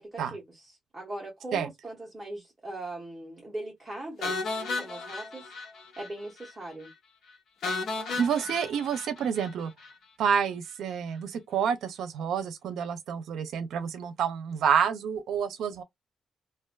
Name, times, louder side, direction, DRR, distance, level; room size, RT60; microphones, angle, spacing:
voice 1, 0.0-5.5 6.0-6.9, right 2 dB, 15° right, 1.2 m, -40 dB
sound 1, 4.2-6.1 6.4-6.5 6.8-6.9 7.6-9.9, left 3 dB, 70° left, 0.9 m, -34 dB
voice 2, 8.2-9.7 10.2-15.8, right 7 dB, 85° right, 0.6 m, -28 dB
2.5 x 2.5 x 2.2 m
cardioid pair, 125°, 0 cm